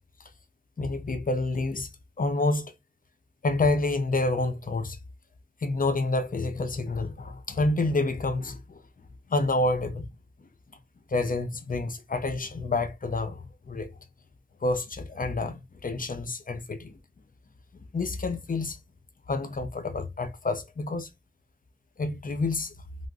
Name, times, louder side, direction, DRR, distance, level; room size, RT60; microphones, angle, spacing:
voice 1, 0.8-1.9 2.2-2.7 3.4-5.0 5.6-8.8 9.3-10.1 11.1-13.9 14.6-17.0 17.9-18.8 19.3-21.1 22.0-22.7, left 2 dB, 45° left, 0.5 m, -28 dB
3.3 x 2.4 x 2.4 m
wide cardioid pair, 75°, 19 cm